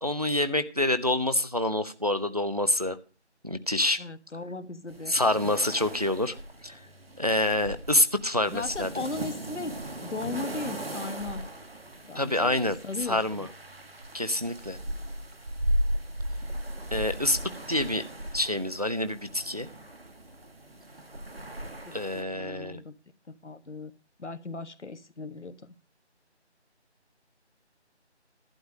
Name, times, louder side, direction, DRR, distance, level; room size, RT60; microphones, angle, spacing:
voice 1, 0.0-3.0 3.4-4.0 5.1-6.3 6.6-6.8 7.2-8.9 12.2-12.8 13.1-13.5 14.1-14.8 16.9-17.4 17.7-18.0 18.3-19.7 21.9-22.8, left 1 dB, 35° right, 0.6 m, -27 dB
voice 2, 4.0-5.5 8.5-11.5 12.0-13.5 21.8-23.0 23.3-23.9 24.2-25.7, left 3 dB, 80° left, 1.4 m, -38 dB
sound 1, 4.9-22.2, right 1 dB, 55° right, 1.7 m, -37 dB
11.5 x 10.5 x 4.9 m
figure-of-eight pair, 175°, 34 cm